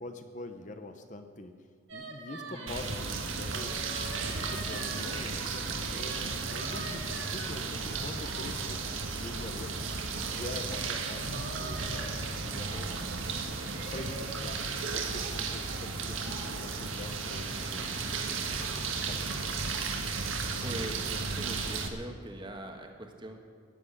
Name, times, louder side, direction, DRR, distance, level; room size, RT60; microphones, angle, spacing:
voice 1, 0.0-3.8 4.2-9.7 10.3-13.0 13.6-18.2 18.6-19.7, left 2 dB, 40° left, 7 dB, 0.8 m, -45 dB
sound 1, 1.9-9.6 10.1-14.4 14.9-16.5, right 2 dB, 70° right, 2.9 m, -46 dB
voice 2, 2.5-2.9 20.6-23.4, right 1 dB, 25° right, 4 dB, 1.4 m, -42 dB
sound 2, 2.7-21.9, right 4 dB, 85° right, 1.5 m, -34 dB
15.5 x 7.6 x 9.9 m, 2.2 s
head